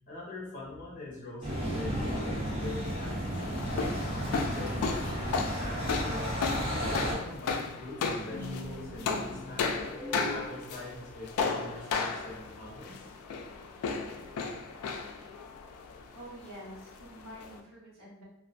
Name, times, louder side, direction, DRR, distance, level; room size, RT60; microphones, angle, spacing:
voice 1, 0.1-4.1 4.5-10.0 10.3-13.1, left 2 dB, 40° left, -5 dB, 0.8 m, -43 dB
sound 1, 1.4-7.2, equal, 30° right, 0.8 m, -33 dB
sound 2, 3.3-17.6, left 4 dB, 90° left, 0.3 m, -35 dB
sound 3, 8.3-10.5, left 1 dB, 10° left, 1.1 m, -40 dB
voice 2, 16.1-18.2, equal, 85° right, -5 dB, 1.0 m, -47 dB
2.3 x 2.2 x 2.4 m, 0.86 s
head